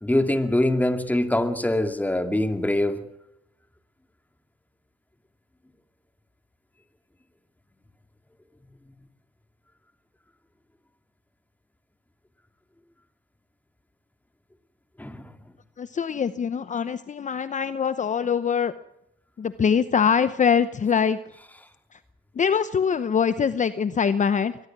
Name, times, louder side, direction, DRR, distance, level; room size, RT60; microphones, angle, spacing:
voice 1, 0.0-3.1 15.0-15.2, left 1 dB, 10° left, 2.4 m, -23 dB
voice 2, 15.8-18.7 19.4-21.2 21.9-22.0 22.3-24.6, left 7 dB, 40° left, 0.9 m, -23 dB
23.5 x 20.0 x 6.1 m
cardioid pair, 90°, 20 cm